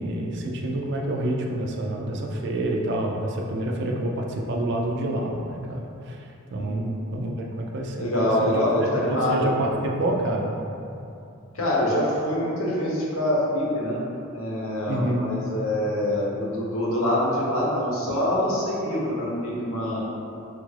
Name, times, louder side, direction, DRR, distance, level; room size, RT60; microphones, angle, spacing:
voice 1, 0.0-8.5 9.0-10.6 14.9-15.3, right 1 dB, 55° right, 0 dB, 0.4 m, -28 dB
voice 2, 6.6-6.9 8.0-9.5 11.5-14.0 14.3-20.0, left 1 dB, 75° left, -5 dB, 0.8 m, -25 dB
3.3 x 2.4 x 3.2 m, 2.6 s
head